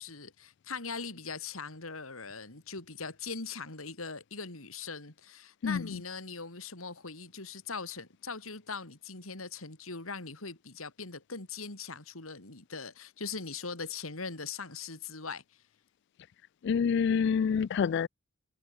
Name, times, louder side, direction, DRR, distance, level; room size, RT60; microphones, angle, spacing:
voice 1, 0.0-15.4, left 4 dB, 85° left, 3.5 m, -41 dB
voice 2, 5.6-6.0 16.6-18.1, left 6 dB, 55° left, 0.3 m, -27 dB
head